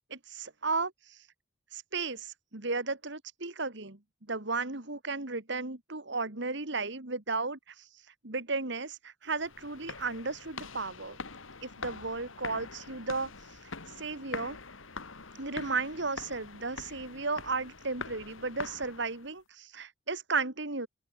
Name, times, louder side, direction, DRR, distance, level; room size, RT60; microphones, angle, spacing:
voice 1, 0.1-1.2 1.7-4.0 4.3-7.7 8.2-11.2 11.6-13.3 14.0-14.6 15.3-20.9, right 3 dB, 65° right, 2.5 m, -34 dB
sound 1, 9.3-19.3, left 4 dB, 85° left, 2.8 m, -44 dB
open air
head